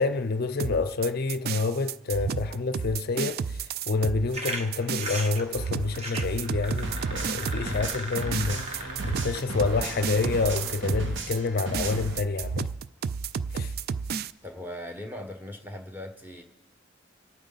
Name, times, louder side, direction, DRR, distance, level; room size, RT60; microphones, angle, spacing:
voice 1, 0.0-12.7 13.5-13.7, left 3 dB, 50° left, 0.5 m, -28 dB
sound 1, 0.6-14.3, right 6 dB, 50° right, 0.3 m, -32 dB
sound 2, 4.3-10.4, right 1 dB, 35° right, 1.4 m, -38 dB
sound 3, 6.8-12.2, right 1 dB, 70° right, 1.1 m, -34 dB
voice 2, 14.4-16.4, left 1 dB, 10° right, 1.2 m, -39 dB
27.0 x 9.1 x 4.0 m
head